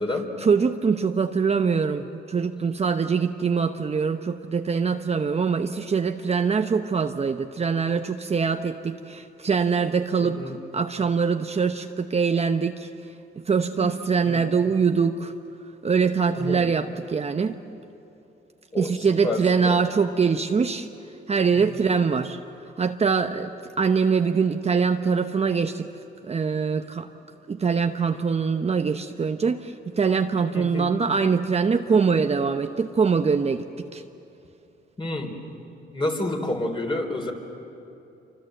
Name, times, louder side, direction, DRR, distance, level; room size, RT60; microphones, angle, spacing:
voice 1, 0.4-12.9 13.5-15.3 15.8-17.6 18.8-20.9 21.3-22.4 22.8-23.5 23.8-25.9 26.2-27.1 27.5-33.6 33.9-34.0, right 5 dB, 30° right, 6 dB, 0.9 m, -23 dB
voice 2, 10.2-10.5 13.8-13.9 14.2-14.5 16.3-16.7 18.7-19.8 21.5-21.7 30.5-30.9 35.0-35.3 35.9-37.3, left 2 dB, 25° left, 3 dB, 4.1 m, -29 dB
27.0 x 25.0 x 7.9 m, 2.8 s
cardioid pair, 90°, 20 cm